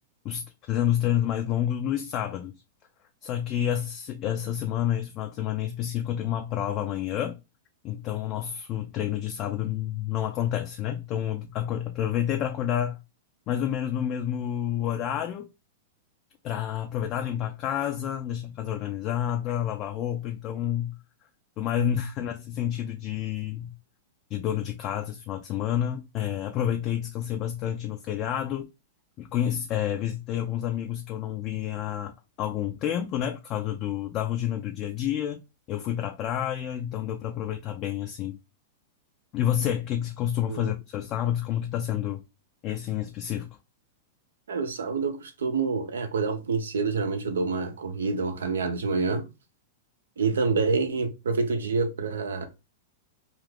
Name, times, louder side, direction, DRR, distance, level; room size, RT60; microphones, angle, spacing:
voice 1, 0.2-2.6 3.2-7.4 7.8-13.0 13.5-15.5 16.4-20.9 21.6-23.7 24.3-28.7 29.2-32.1 32.4-35.4 35.7-38.4 39.3-42.2 42.6-43.5, left 10 dB, 40° left, 0.4 m, -29 dB
voice 2, 44.5-49.3 50.2-52.5, right 4 dB, 90° right, 0.6 m, -27 dB
2.4 x 2.4 x 3.3 m
hypercardioid pair, 120°, 0 cm